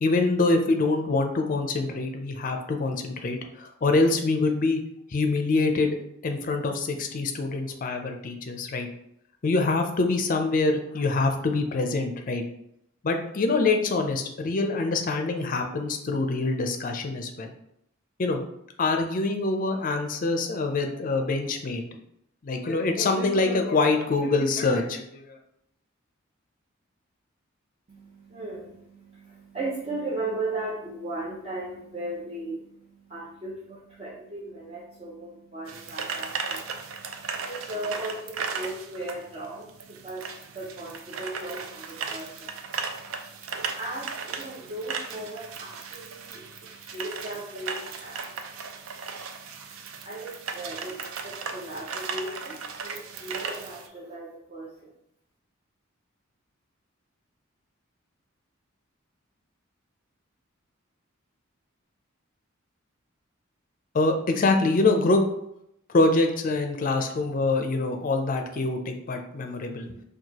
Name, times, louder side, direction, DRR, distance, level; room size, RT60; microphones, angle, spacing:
voice 1, 0.0-4.8 5.1-6.0 6.2-8.9 9.4-12.4 13.0-17.5 18.2-18.4 18.8-21.8 22.4-25.4 63.9-65.2 65.9-69.9, left 3 dB, 40° left, 5 dB, 0.4 m, -25 dB
voice 2, 27.9-54.9, right 2 dB, 30° right, -6 dB, 0.6 m, -37 dB
sound 1, 35.7-53.9, right 5 dB, 80° right, 0.4 m, -36 dB
4.6 x 2.3 x 2.8 m, 0.76 s
head